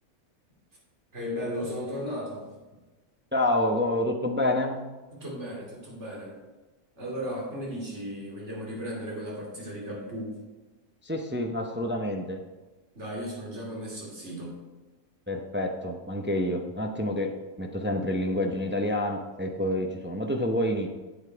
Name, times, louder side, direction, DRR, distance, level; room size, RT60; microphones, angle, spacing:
voice 1, 1.1-2.5 5.1-6.4 7.0-10.4 12.9-14.6, equal, 55° right, -3 dB, 3.1 m, -35 dB
voice 2, 3.3-4.8 11.0-12.4 15.3-17.3 17.6-20.9, left 1 dB, 15° right, 3 dB, 0.5 m, -28 dB
8.8 x 8.1 x 4.6 m, 1.2 s
omnidirectional pair, 1.5 m